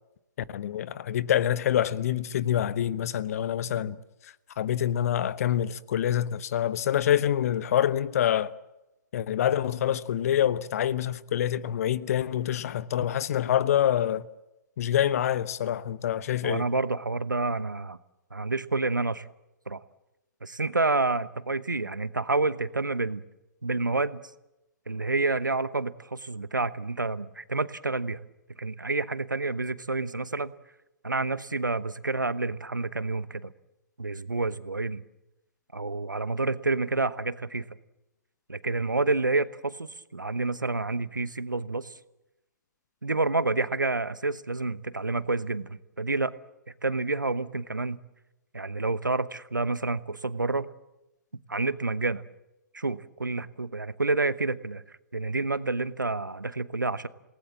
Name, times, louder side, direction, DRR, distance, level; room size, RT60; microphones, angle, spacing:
voice 1, 0.5-4.0 4.6-8.5 9.1-14.3 14.8-16.7, left 10 dB, 50° left, 0.9 m, -26 dB
voice 2, 16.4-18.0 18.3-19.3 19.7-19.8 20.4-23.2 23.6-24.3 24.9-28.2 28.6-30.5 31.0-33.5 34.0-35.0 35.7-37.7 38.5-41.9 43.0-46.3 46.8-48.0 48.5-50.7 51.5-52.2 52.7-57.1, right 3 dB, 90° right, 1.0 m, -29 dB
27.0 x 19.0 x 7.5 m
figure-of-eight pair, 120°, 10 cm